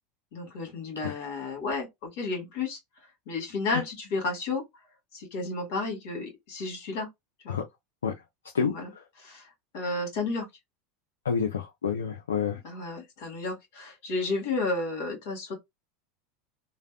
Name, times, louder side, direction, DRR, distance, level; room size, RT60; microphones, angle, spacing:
voice 1, 0.3-2.8 3.3-4.6 5.1-7.1 7.4-7.6 8.6-8.9 9.2-9.5 9.7-10.5 12.6-15.5, left 3 dB, 65° left, 1.9 m, -32 dB
voice 2, 11.2-12.6, left 6 dB, 90° left, 0.4 m, -28 dB
3.3 x 2.1 x 2.4 m
hypercardioid pair, 90°, 0 cm